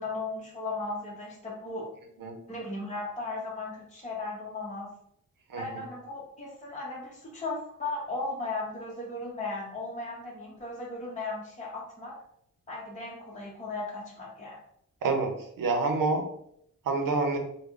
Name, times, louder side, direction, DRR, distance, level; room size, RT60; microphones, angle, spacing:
voice 1, 0.0-1.9 2.5-4.9 5.6-12.1 12.7-14.6, left 2 dB, 20° left, -5 dB, 0.9 m, -36 dB
voice 2, 15.0-16.2 16.8-17.4, right 3 dB, 70° right, 5 dB, 0.7 m, -27 dB
3.4 x 2.2 x 3.5 m, 0.72 s
cardioid pair, 75°, 34 cm